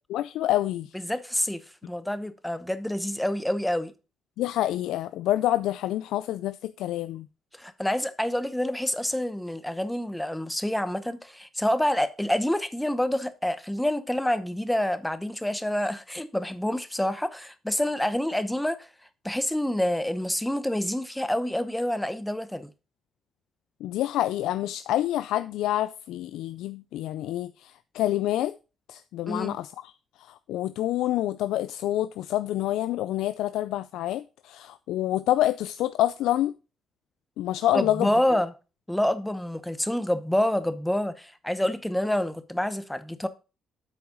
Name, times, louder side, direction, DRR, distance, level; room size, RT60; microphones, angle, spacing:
voice 1, 0.1-0.9 4.4-7.3 23.8-28.6 28.9-29.9 30.2-36.5 37.4-38.1, left 13 dB, 90° left, 0.3 m, -27 dB
voice 2, 1.1-3.9 7.6-18.9 19.2-22.7 29.3-29.6 37.7-38.5 38.9-43.3, left 1 dB, 5° left, 0.9 m, -27 dB
8.2 x 4.7 x 5.3 m
cardioid pair, 90°, 0 cm